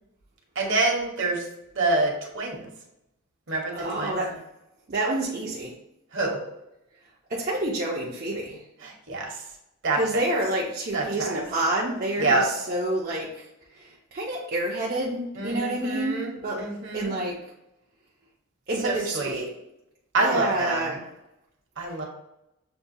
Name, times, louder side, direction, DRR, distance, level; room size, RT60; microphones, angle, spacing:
voice 1, 0.5-1.5 1.7-2.7 3.5-4.2 6.1-6.4 8.8-9.4 9.8-10.0 10.9-11.3 12.2-12.4 15.4-17.1 18.8-19.5 20.1-20.9 21.8-22.0, right 2 dB, 60° right, 0 dB, 1.0 m, -26 dB
voice 2, 3.7-4.4 4.9-5.7 7.3-8.6 10.0-13.5 13.7-17.4 18.7-19.5 20.2-21.0, right 1 dB, 40° right, -4 dB, 0.6 m, -28 dB
6.7 x 2.3 x 2.7 m, 0.87 s
head